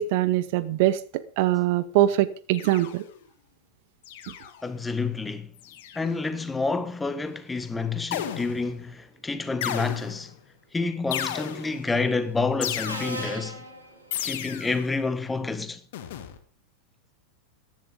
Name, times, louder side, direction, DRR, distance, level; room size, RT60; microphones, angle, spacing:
voice 1, 0.0-3.0, right 14 dB, 50° right, 0.9 m, -23 dB
sound 1, 2.5-3.2 4.0-4.7 5.6-6.1 8.1-8.8 9.6-10.3 11.1-11.9 12.6-13.4 14.1-14.9 15.9-16.4, left 10 dB, 55° left, 1.8 m, -34 dB
voice 2, 4.6-5.5 5.9-10.3 10.7-13.6 14.2-15.8, left 4 dB, 10° left, 1.4 m, -28 dB
Subway metro underground, 11.4-11.7 12.8-14.5, right 1 dB, 80° right, 6.5 m, -38 dB
15.0 x 10.5 x 5.1 m
figure-of-eight pair, 90°, 0 cm